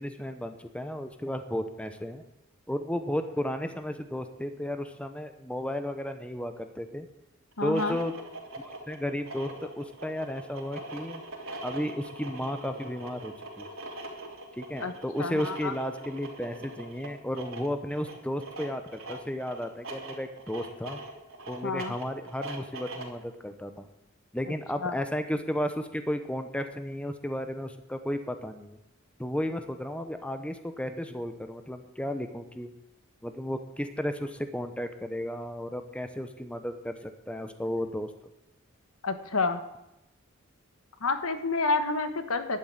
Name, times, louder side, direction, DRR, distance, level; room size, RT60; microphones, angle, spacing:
voice 1, 0.0-2.2 2.7-7.1 7.6-8.1 8.6-11.2 11.6-13.7 14.6-21.0 21.5-23.9 24.3-28.8 29.2-32.7 33.2-38.1, equal, 5° left, 8 dB, 0.9 m, -33 dB
sound 1, 7.5-23.2, right 1 dB, 70° right, 3.5 m, -42 dB
voice 2, 7.6-8.0 14.8-14.9 15.2-15.7 21.6-22.0 24.5-25.0 39.0-39.6 41.0-42.6, left 3 dB, 85° left, 9 dB, 1.3 m, -29 dB
11.5 x 7.7 x 9.4 m, 0.89 s
head